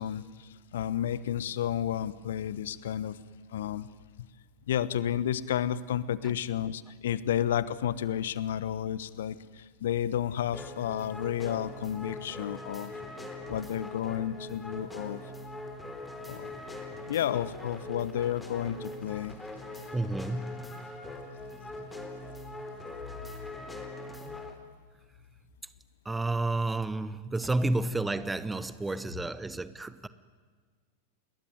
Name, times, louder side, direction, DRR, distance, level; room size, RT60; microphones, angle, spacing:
voice 1, 0.0-3.2 3.5-3.9 4.7-12.9 13.5-15.2 16.3-16.6 17.1-19.4, left 10 dB, 60° left, 1.0 m, -31 dB
sound 1, 10.5-24.5, left 2 dB, 5° left, 3.8 m, -42 dB
voice 2, 19.9-20.7 26.0-30.1, right 2 dB, 10° right, 1.1 m, -31 dB
29.5 x 21.0 x 9.6 m
figure-of-eight pair, 90°, 0 cm